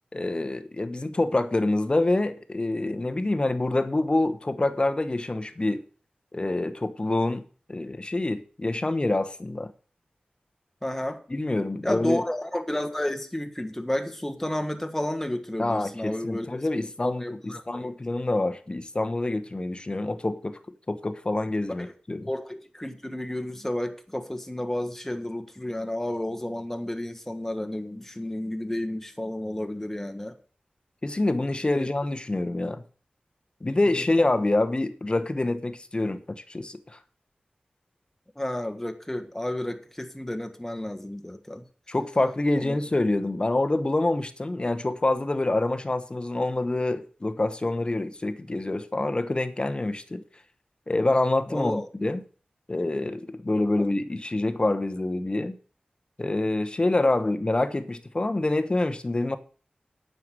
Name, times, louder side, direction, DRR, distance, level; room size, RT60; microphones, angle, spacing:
voice 1, 0.1-5.8 6.3-7.4 7.7-9.7 11.3-12.2 15.6-20.6 20.9-22.3 31.0-32.8 33.6-36.2 36.5-37.0 41.9-50.2 50.9-52.2 52.7-55.6 56.2-59.4, left 2 dB, 35° left, 1.1 m, -26 dB
voice 2, 10.8-11.2 11.8-16.5 16.8-17.9 21.8-21.9 22.2-30.3 31.7-31.9 33.9-34.0 38.4-41.6 42.6-42.8 51.5-51.9, left 1 dB, 10° left, 1.5 m, -31 dB
9.4 x 6.7 x 7.6 m
wide cardioid pair, 75°, 3 cm